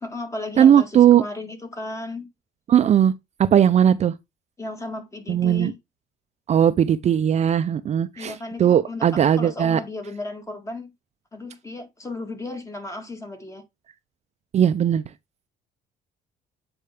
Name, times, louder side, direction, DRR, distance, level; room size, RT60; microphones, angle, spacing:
voice 1, 0.0-2.3 4.6-5.8 8.2-10.9 11.3-13.6, left 2 dB, 15° left, 1.7 m, -34 dB
voice 2, 0.6-1.2 2.7-3.1 3.4-4.1 5.3-5.7 6.5-9.8 14.5-15.0, right 9 dB, 40° right, 0.5 m, -18 dB
8.4 x 4.4 x 3.5 m
cardioid pair, 110°, 17 cm